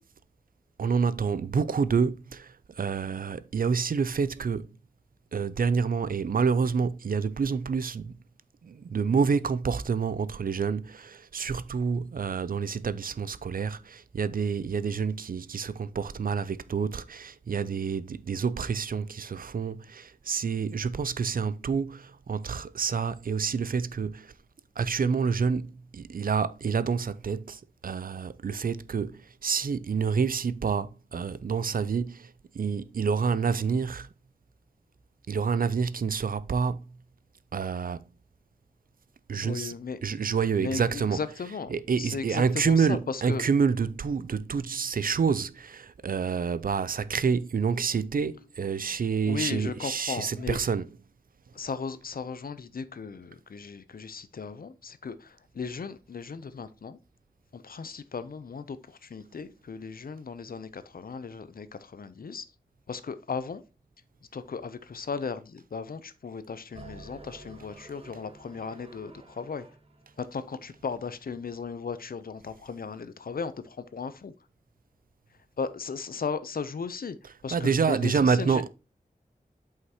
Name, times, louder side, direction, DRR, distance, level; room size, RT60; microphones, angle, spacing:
voice 1, 0.8-4.7 5.3-8.2 8.6-24.3 24.8-34.1 35.3-36.8 37.5-38.0 39.3-39.7 40.0-41.2 41.7-50.9 77.5-78.7, right 5 dB, 65° right, 0.4 m, -28 dB
voice 2, 39.3-40.0 40.6-41.7 42.0-43.4 49.2-50.6 51.5-57.0 57.5-62.5 62.9-63.6 64.3-69.7 70.2-74.3 75.6-77.2 77.4-78.6, left 5 dB, 65° left, 0.6 m, -36 dB
sound 1, 66.7-71.1, right 2 dB, 35° right, 1.0 m, -50 dB
7.9 x 5.7 x 2.9 m
wide cardioid pair, 85°, 16 cm